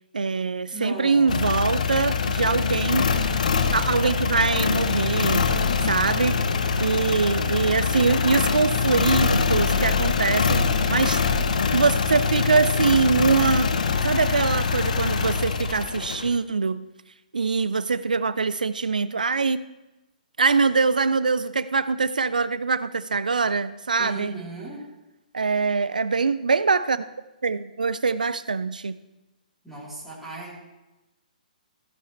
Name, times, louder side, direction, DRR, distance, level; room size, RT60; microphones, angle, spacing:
voice 1, 0.1-3.1 3.7-5.5 5.8-6.4 6.8-11.3 11.7-13.7 14.0-16.9 17.3-19.6 20.4-24.3 25.3-27.0 27.4-29.0, right 4 dB, 70° right, 15 dB, 0.4 m, -23 dB
voice 2, 0.7-2.0 24.0-24.8 29.6-30.7, right 2 dB, ahead, -9 dB, 3.5 m, -37 dB
sound 1, 1.3-16.3, left 5 dB, 60° left, 0.8 m, -24 dB
15.5 x 8.4 x 3.2 m, 1.0 s
figure-of-eight pair, 125°, 5 cm